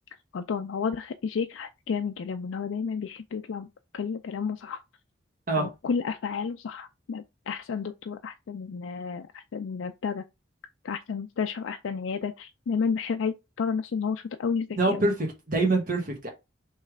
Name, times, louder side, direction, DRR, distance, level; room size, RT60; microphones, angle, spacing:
voice 1, 0.3-3.7 3.9-4.8 5.5-10.2 10.8-15.1, left 5 dB, 80° left, 0.4 m, -31 dB
voice 2, 14.8-16.3, right 2 dB, 45° right, 1.1 m, -25 dB
3.2 x 3.0 x 4.7 m
head